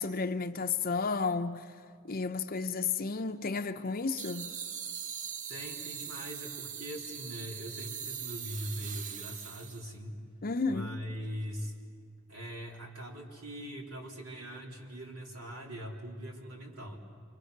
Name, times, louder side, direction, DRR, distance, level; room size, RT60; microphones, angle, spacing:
voice 1, 0.0-1.7 2.0-4.5 10.4-10.9, left 4 dB, 40° left, 0.7 m, -32 dB
sound 1, 4.2-9.9, right 7 dB, 35° right, 0.6 m, -41 dB
voice 2, 5.5-10.2 10.7-11.7 12.3-17.0, equal, 75° right, 3.7 m, -41 dB
28.0 x 25.5 x 6.6 m
head